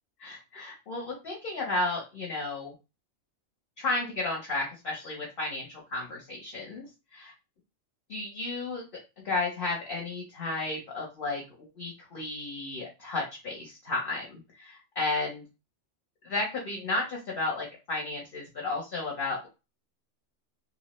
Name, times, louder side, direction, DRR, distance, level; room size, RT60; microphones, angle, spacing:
voice 1, 0.2-2.7 3.8-6.8 7.1-7.3 8.1-8.9 9.2-15.4 16.2-19.5, left 2 dB, 50° left, -2 dB, 0.8 m, -33 dB
2.7 x 2.1 x 2.9 m, 0.28 s
omnidirectional pair, 1.3 m